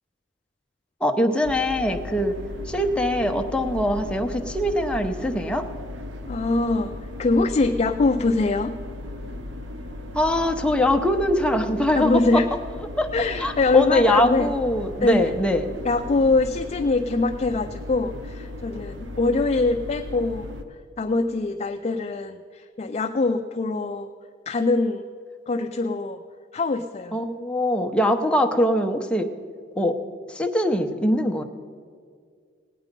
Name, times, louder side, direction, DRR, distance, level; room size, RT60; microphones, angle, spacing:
voice 1, 1.0-2.3 2.7-5.7 10.1-12.4 13.0-13.1 13.4-15.7 27.1-29.3 29.7-30.0 30.3-31.4, left 1 dB, 5° left, 4 dB, 0.7 m, -22 dB
sound 1, 1.4-20.6, left 1 dB, 90° right, 0.9 m, -36 dB
voice 2, 6.3-8.7 12.0-12.5 13.1-14.5 15.0-15.3 15.8-20.6 21.0-24.1 24.5-25.0 25.5-26.2 26.5-27.2, left 3 dB, 35° left, 6 dB, 0.4 m, -23 dB
17.5 x 9.1 x 5.3 m, 2.1 s
head